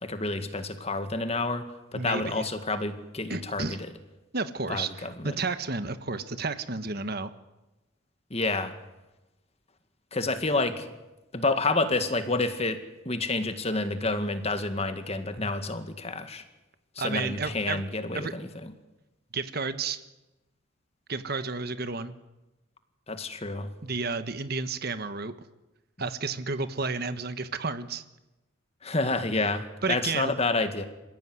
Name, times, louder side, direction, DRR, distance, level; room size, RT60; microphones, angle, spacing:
voice 1, 0.0-3.9 4.7-5.3 8.3-8.7 10.1-10.9 11.3-12.8 13.1-16.4 17.0-18.7 23.1-23.7 28.8-30.9, left 3 dB, 30° left, 9 dB, 2.0 m, -29 dB
voice 2, 1.9-2.4 3.3-3.8 4.3-7.3 17.0-17.8 18.1-18.3 19.3-20.0 21.1-22.1 23.8-25.3 26.0-28.0 29.8-30.3, right 4 dB, 50° right, 11 dB, 1.3 m, -31 dB
27.0 x 15.5 x 9.6 m, 1.0 s
head